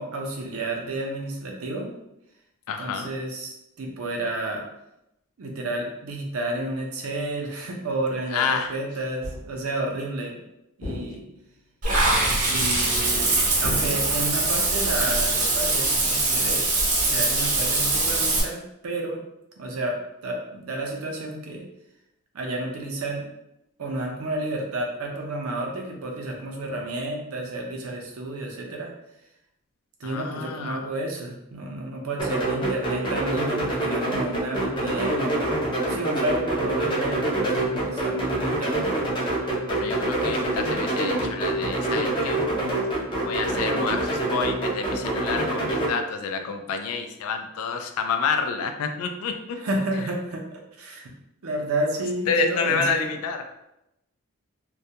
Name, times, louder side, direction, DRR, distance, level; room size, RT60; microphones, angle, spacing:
voice 1, 0.0-1.9 2.8-4.6 5.4-10.4 10.8-11.2 12.5-16.7 17.0-19.2 19.6-20.0 20.2-21.6 22.3-23.2 23.8-28.9 30.0-35.5 35.9-38.8 49.6-51.1 51.4-53.1, right 2 dB, 80° right, 1 dB, 0.5 m, -31 dB
voice 2, 2.7-3.1 8.3-8.7 30.0-30.9 39.7-42.4 43.2-49.6 51.9-53.4, left 5 dB, 90° left, 6 dB, 0.3 m, -28 dB
sound 1, 9.2-9.7 10.8-11.6 13.6-14.5, left 1 dB, 50° left, 0.7 m, -36 dB
Water / Bathtub (filling or washing), 11.8-18.4, right 2 dB, 35° right, 0.5 m, -22 dB
sound 2, 32.2-45.9, right 1 dB, 20° left, 0.4 m, -26 dB
2.2 x 2.1 x 2.7 m, 0.86 s
head